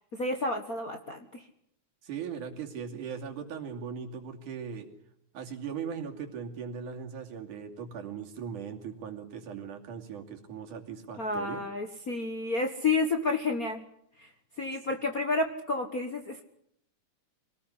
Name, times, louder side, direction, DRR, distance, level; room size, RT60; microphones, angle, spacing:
voice 1, 0.1-1.4 11.2-13.8 14.2-14.3 14.6-16.4, left 3 dB, 40° left, 4 dB, 1.3 m, -30 dB
voice 2, 2.0-4.9 5.3-11.6, right 7 dB, 75° right, 3 dB, 4.1 m, -39 dB
25.0 x 19.0 x 10.0 m, 0.71 s
omnidirectional pair, 3.6 m